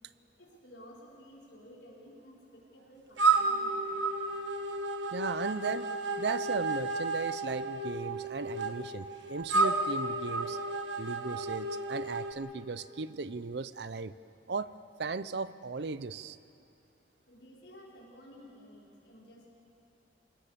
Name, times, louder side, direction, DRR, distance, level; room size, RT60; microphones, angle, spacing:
voice 1, 0.4-4.2 17.3-19.5, equal, 75° left, -4 dB, 5.5 m, -54 dB
sound 1, 3.2-12.3, right 3 dB, 85° right, 1.5 m, -32 dB
voice 2, 5.1-5.9 6.2-10.6 11.0-14.1 14.5-14.7 15.0-16.4, right 4 dB, 65° right, 15 dB, 0.6 m, -36 dB
28.5 x 18.5 x 6.9 m, 2.7 s
head